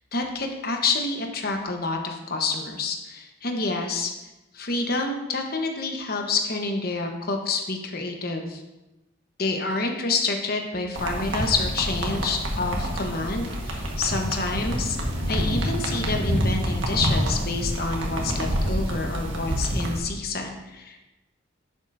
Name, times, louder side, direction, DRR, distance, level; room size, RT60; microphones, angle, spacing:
voice 1, 0.1-4.1 4.5-8.6 9.4-15.0 15.3-21.0, left 3 dB, 50° left, 3 dB, 1.1 m, -28 dB
sound 1, 10.9-20.0, equal, 70° right, 1.5 m, -27 dB
11.0 x 7.5 x 2.7 m, 1.0 s
head